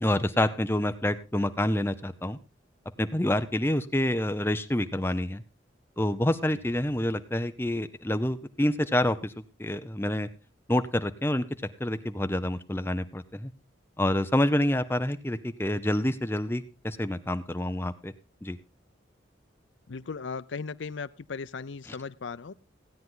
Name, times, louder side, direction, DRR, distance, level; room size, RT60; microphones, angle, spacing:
voice 1, 0.0-2.4 3.0-5.4 6.0-10.3 10.7-11.4 11.8-13.5 14.0-18.1 18.4-18.6, left 1 dB, 10° left, 10 dB, 0.7 m, -27 dB
voice 2, 19.9-22.5, left 5 dB, 80° left, 15 dB, 0.6 m, -37 dB
16.5 x 9.4 x 3.8 m, 0.31 s
head